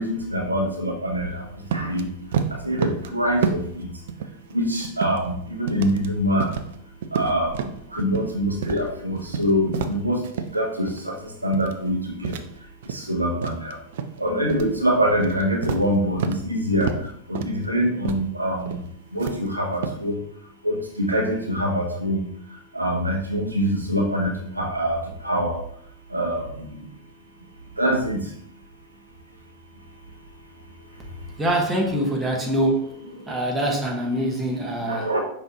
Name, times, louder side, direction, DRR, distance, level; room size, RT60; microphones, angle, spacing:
voice 1, 0.0-1.3 1.7-2.1 2.6-3.9 4.5-6.5 7.1-7.5 7.9-10.2 10.5-11.1 11.4-12.3 13.1-13.7 14.2-16.9 17.3-18.8 19.1-20.2 20.6-22.3 22.7-25.0 25.2-25.6 26.1-26.4 27.8-28.2 34.9-35.2, equal, 80° right, 0 dB, 0.8 m, -24 dB
sound 1, 1.7-2.0 2.3-3.1 3.4-3.8 4.1-5.3 5.7-6.1 6.4-6.8 7.0-8.3 8.6-8.8 9.2-10.6 10.9-11.2 11.5-11.9 12.2-13.1 13.4-14.2 14.5-14.8 15.1-16.5 16.8-17.1 17.4-17.6 18.1-18.3 18.6-18.9 19.2-20.0, right 7 dB, 55° right, 0.4 m, -29 dB
voice 2, 31.4-33.0 33.3-35.1, right 1 dB, 15° right, 0 dB, 1.0 m, -24 dB
5.3 x 3.0 x 2.8 m, 0.69 s
figure-of-eight pair, 90°, 0 cm